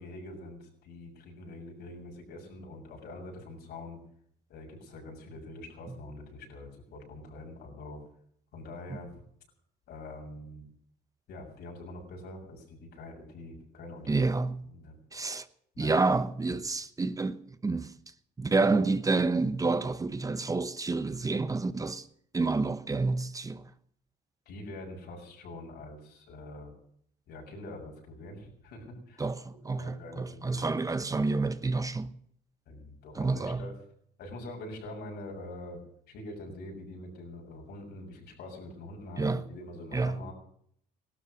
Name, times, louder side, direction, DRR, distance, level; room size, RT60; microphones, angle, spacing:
voice 1, 0.0-4.0 4.5-8.0 8.5-9.1 9.9-10.6 11.3-14.1 14.6-15.0 15.7-16.0 24.4-26.7 27.3-29.2 29.5-30.8 32.7-33.7 34.2-35.8 36.1-40.3, left 2 dB, 75° left, 6.6 m, -44 dB
voice 2, 14.1-14.6 15.1-15.5 15.8-17.9 18.4-22.0 22.3-23.6 29.2-32.1 33.2-33.6 39.2-39.4 39.9-40.2, right 3 dB, 20° right, 1.0 m, -29 dB
17.5 x 12.5 x 6.4 m
cardioid pair, 110°, 17 cm